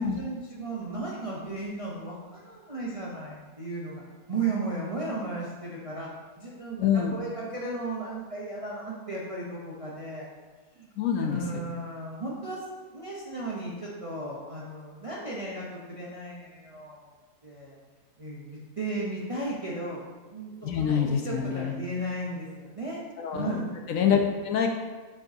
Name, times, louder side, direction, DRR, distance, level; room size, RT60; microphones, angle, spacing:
voice 1, 0.0-4.0 4.3-6.1 6.4-10.3 10.7-10.9 11.2-12.6 12.9-17.0 17.4-17.8 18.2-23.0 23.3-23.7, right 2 dB, 35° right, -4 dB, 0.5 m, -35 dB
voice 2, 6.8-7.1 11.0-11.4 20.6-21.7 23.2-23.6 23.9-24.7, left 8 dB, 70° left, 3 dB, 0.9 m, -26 dB
7.0 x 5.3 x 2.7 m, 1.3 s
omnidirectional pair, 1.7 m